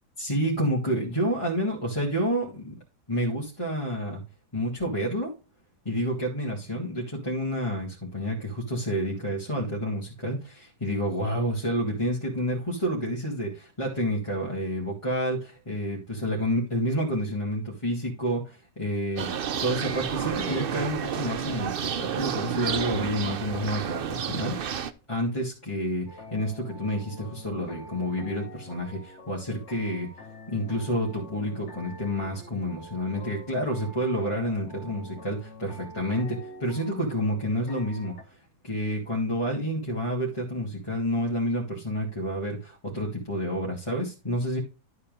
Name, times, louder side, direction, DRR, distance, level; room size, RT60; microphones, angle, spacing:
voice 1, 0.2-2.8 3.1-4.2 4.5-5.4 5.8-19.3 19.6-30.1 30.5-44.6, equal, 20° left, -5 dB, 2.1 m, -29 dB
sound 1, 19.2-24.9, right 8 dB, 65° right, 0.5 m, -30 dB
sound 2, 26.1-38.2, left 1 dB, 45° left, 1.9 m, -45 dB
11.5 x 4.3 x 5.2 m, 0.31 s
omnidirectional pair, 1.8 m